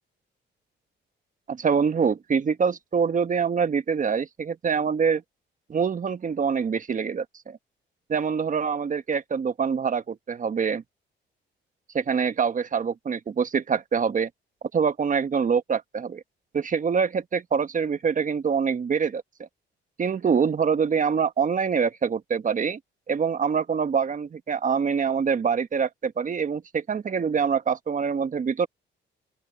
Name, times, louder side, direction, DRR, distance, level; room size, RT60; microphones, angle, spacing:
voice 1, 1.5-5.2 5.7-7.6 8.1-10.8 11.9-14.3 14.7-16.2 16.5-19.2 20.0-22.8 23.1-28.7, right 6 dB, 40° right, 1.4 m, -25 dB
open air
cardioid pair, 90°, 20 cm